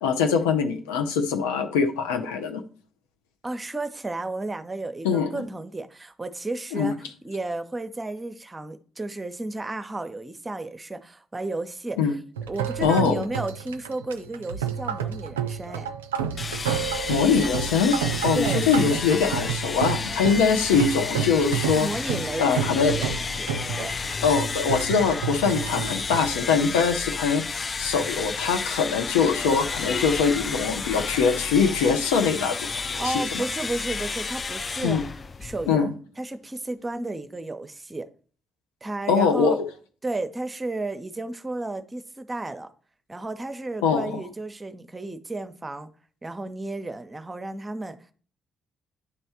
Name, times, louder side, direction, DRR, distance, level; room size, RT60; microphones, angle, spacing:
voice 1, 0.0-2.6 5.0-5.4 6.7-6.9 12.0-12.1 12.8-13.2 17.1-17.9 18.2-21.9 22.4-22.9 24.2-33.4 34.8-35.0 35.7-35.9 39.1-39.7 43.8-44.2, left 6 dB, 70° left, 0.6 m, -23 dB
voice 2, 3.4-7.0 7.2-12.0 12.5-15.9 18.3-18.6 21.8-23.5 23.8-23.9 33.0-35.9 36.2-38.1 38.8-39.6 40.0-42.7 43.1-45.9 46.2-48.0, right 2 dB, 20° right, 0.8 m, -33 dB
sound 1, 12.4-27.2, right 8 dB, 80° right, 0.3 m, -30 dB
sound 2, 16.4-35.8, left 4 dB, 35° left, 0.3 m, -31 dB
9.6 x 3.3 x 4.2 m
figure-of-eight pair, 40°, 0 cm